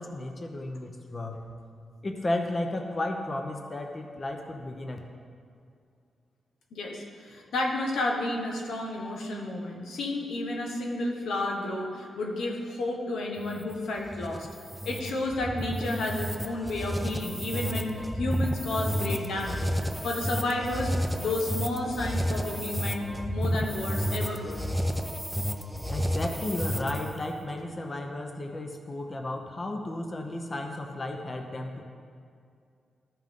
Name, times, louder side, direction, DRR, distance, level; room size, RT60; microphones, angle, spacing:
voice 1, 0.0-1.4 2.0-5.0 25.9-31.8, left 1 dB, 35° left, 3 dB, 0.7 m, -33 dB
voice 2, 6.7-14.5 14.8-19.7 20.0-24.6, left 2 dB, 90° left, 0 dB, 1.2 m, -31 dB
sound 1, 13.4-27.2, equal, ahead, 0.5 m, -31 dB
13.0 x 5.6 x 3.7 m, 2.3 s
cardioid pair, 100°, 0 cm